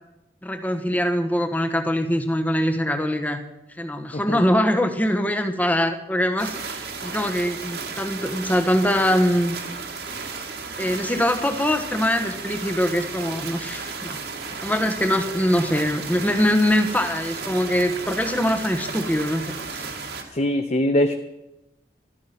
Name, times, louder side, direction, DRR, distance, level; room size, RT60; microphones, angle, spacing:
voice 1, 0.4-3.4 3.8-9.6 10.8-14.2 14.6-19.8, equal, 10° left, 7 dB, 1.2 m, -23 dB
sound 1, 6.4-20.2, right 4 dB, 75° right, 2.4 m, -34 dB
voice 2, 20.3-21.1, left 1 dB, 40° left, 7 dB, 0.8 m, -22 dB
14.0 x 13.0 x 6.0 m, 0.94 s
head